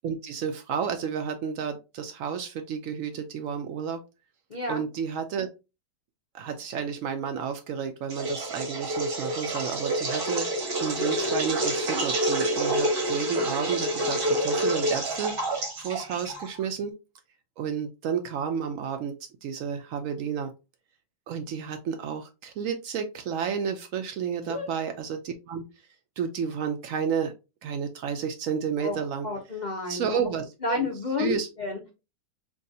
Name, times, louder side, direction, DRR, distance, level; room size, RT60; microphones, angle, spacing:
voice 1, 0.0-4.0 4.7-5.5 6.3-10.5 10.8-16.9 17.6-19.1 19.4-20.5 21.3-25.7 26.2-27.3 27.6-29.3 29.9-30.9 31.2-31.5, right 7 dB, 80° right, 5 dB, 0.7 m, -31 dB
voice 2, 4.5-4.8 24.5-24.7 28.8-29.0 29.2-30.3 30.6-31.8, left 3 dB, 55° left, 0 dB, 0.5 m, -30 dB
sound 1, 8.1-16.6, right 1 dB, 40° right, 0.9 m, -28 dB
4.7 x 2.3 x 2.6 m, 0.27 s
omnidirectional pair, 1.9 m